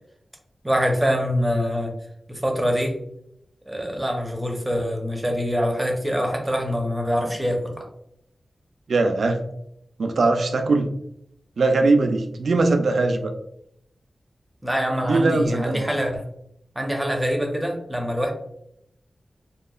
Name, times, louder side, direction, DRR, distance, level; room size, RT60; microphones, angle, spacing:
voice 1, 0.6-1.9 2.3-3.0 3.7-7.9 14.6-16.2 16.8-18.3, equal, 10° right, 2 dB, 0.6 m, -24 dB
voice 2, 8.9-9.5 10.0-10.9 11.6-13.3 15.0-15.8, right 3 dB, 80° right, 5 dB, 0.3 m, -20 dB
2.8 x 2.3 x 2.3 m, 0.75 s
wide cardioid pair, 75°, 0 cm